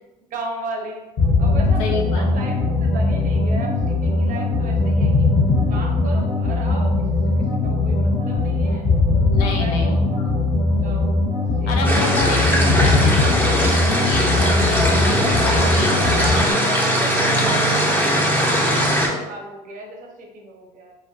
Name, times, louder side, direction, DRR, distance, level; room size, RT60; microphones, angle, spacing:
voice 1, 0.3-1.0 1.4-5.3 5.7-7.0 7.6-8.9 9.6-10.1 10.7-11.1 11.4-12.3 16.0-17.2 17.5-20.9, right 2 dB, 45° right, 1 dB, 0.6 m, -35 dB
sound 1, 1.2-16.5, left 2 dB, 45° left, 0.8 m, -20 dB
voice 2, 1.8-2.3 9.3-10.5 11.7-16.6, left 3 dB, 75° left, 1 dB, 0.5 m, -29 dB
sound 2, 11.8-19.1, equal, 10° left, 0.7 m, -20 dB
2.2 x 2.1 x 2.6 m, 1.1 s
hypercardioid pair, 65°, 19 cm